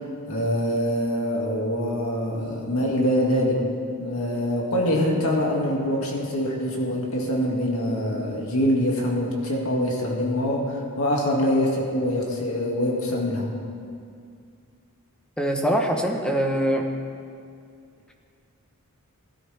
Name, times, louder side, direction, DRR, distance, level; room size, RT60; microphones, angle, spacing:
voice 1, 0.3-3.6 4.0-13.5, equal, 65° left, -2 dB, 2.3 m, -24 dB
voice 2, 15.4-16.9, equal, 5° left, 2 dB, 1.1 m, -23 dB
17.5 x 12.5 x 3.5 m, 2.3 s
head